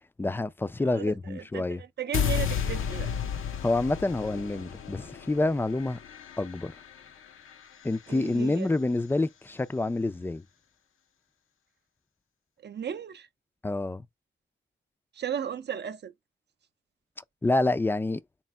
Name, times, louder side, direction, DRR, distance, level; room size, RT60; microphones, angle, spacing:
voice 1, 0.2-1.8 3.6-6.0 6.4-6.8 7.8-10.4 13.6-14.1 17.4-18.2, left 2 dB, 10° left, 0.4 m, -27 dB
voice 2, 0.8-3.1 8.1-8.7 12.6-13.3 15.1-16.1, right 8 dB, 55° right, 0.5 m, -35 dB
sound 1, 2.1-8.3, left 8 dB, 80° left, 0.6 m, -33 dB
4.3 x 2.1 x 3.5 m
cardioid pair, 75°, 21 cm